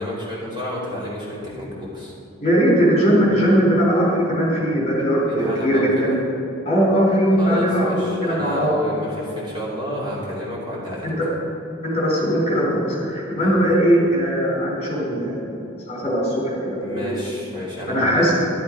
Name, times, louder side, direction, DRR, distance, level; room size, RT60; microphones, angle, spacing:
voice 1, 0.0-2.1 5.3-6.2 7.4-11.1 13.4-13.6 16.8-18.3, left 1 dB, 25° right, -6 dB, 2.9 m, -30 dB
voice 2, 2.4-6.1 6.6-8.7 11.0-11.3 11.8-17.1 17.9-18.3, equal, 30° left, -3 dB, 3.7 m, -20 dB
12.5 x 12.0 x 5.2 m, 2.8 s
head